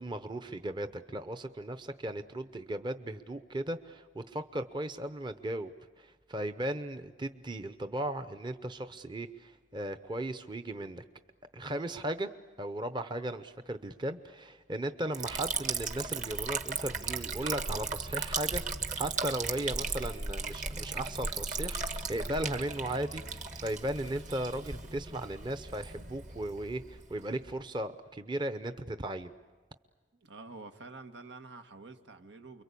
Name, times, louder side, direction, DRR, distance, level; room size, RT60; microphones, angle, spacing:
voice 1, 0.0-5.7 6.0-11.0 11.5-12.3 12.6-18.6 18.9-29.3, right 1 dB, 25° right, 0.8 m, -36 dB
Liquid, 15.1-27.6, right 4 dB, 45° right, 1.5 m, -36 dB
voice 2, 30.2-32.6, right 3 dB, 90° right, 1.7 m, -48 dB
29.5 x 23.0 x 8.4 m
head